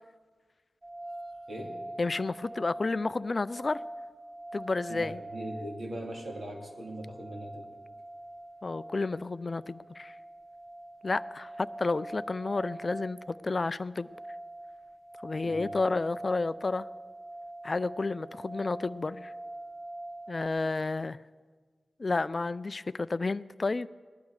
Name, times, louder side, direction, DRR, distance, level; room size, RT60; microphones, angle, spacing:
sound 1, 0.8-20.5, right 1 dB, 25° right, 0.9 m, -44 dB
voice 1, 2.0-3.8 4.5-5.2 8.6-10.1 11.0-14.1 15.2-16.9 17.6-19.3 20.3-21.2 22.0-23.9, left 3 dB, 40° left, 16 dB, 0.4 m, -31 dB
voice 2, 4.9-7.7 15.4-15.7, right 1 dB, 50° right, -1 dB, 2.8 m, -40 dB
20.0 x 11.5 x 4.8 m, 1.5 s
wide cardioid pair, 110°, 0 cm